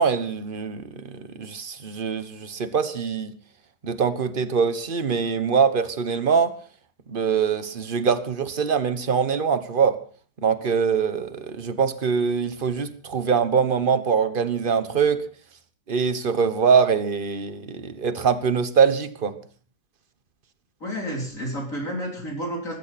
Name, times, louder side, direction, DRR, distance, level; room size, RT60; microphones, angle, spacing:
voice 1, 0.0-3.3 3.8-6.5 7.1-10.0 10.4-15.2 15.9-19.4, right 6 dB, 35° right, 1.2 m, -23 dB
voice 2, 20.8-22.7, equal, 45° left, 4.1 m, -30 dB
20.0 x 15.0 x 4.3 m
omnidirectional pair, 2.0 m